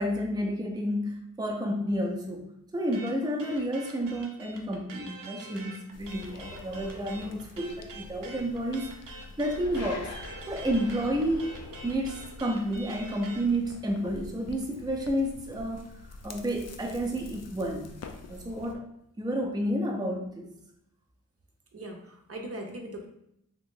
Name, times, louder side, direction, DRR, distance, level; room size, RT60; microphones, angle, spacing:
voice 1, 0.0-2.5 2.7-10.1 10.5-11.6 11.8-15.9 16.2-17.9 18.3-18.8 19.2-20.5, equal, 15° right, 1 dB, 0.6 m, -30 dB
sound 1, 2.9-13.5, right 3 dB, 85° right, 0.6 m, -45 dB
sound 2, 5.9-18.8, left 3 dB, 55° left, 0.5 m, -45 dB
voice 2, 21.7-23.1, right 1 dB, 50° right, 2 dB, 0.7 m, -40 dB
2.9 x 2.5 x 3.7 m, 0.77 s
cardioid pair, 60°, 31 cm